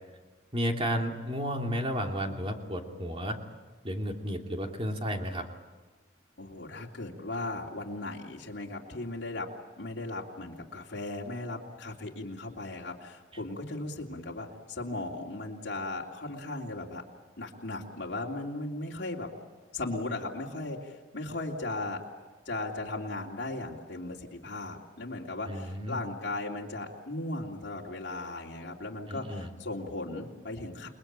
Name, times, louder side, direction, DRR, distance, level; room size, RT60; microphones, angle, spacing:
voice 1, 0.5-3.4 3.8-5.4 25.5-26.0 29.1-29.5, equal, 30° right, 2 dB, 3.1 m, -32 dB
voice 2, 6.4-9.5 9.8-17.0 17.4-19.3 19.7-22.0 22.4-30.9, left 2 dB, 60° left, -3 dB, 3.2 m, -37 dB
29.5 x 21.0 x 9.0 m, 1.3 s
head